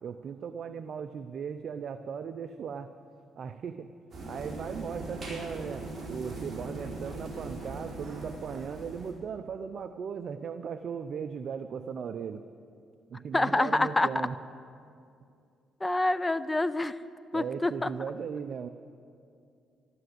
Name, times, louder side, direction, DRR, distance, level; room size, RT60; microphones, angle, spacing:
voice 1, 0.0-2.9 3.4-3.9 4.2-12.4 13.1-14.4 17.3-18.7, right 6 dB, 60° right, 9 dB, 0.5 m, -37 dB
sound 1, 4.1-9.1, right 2 dB, 40° right, 4.7 m, -40 dB
voice 2, 13.3-14.1 15.8-17.0 17.3-17.9, left 2 dB, 15° left, 14 dB, 0.5 m, -26 dB
12.5 x 12.5 x 7.9 m, 2.5 s
cardioid pair, 90°, 0 cm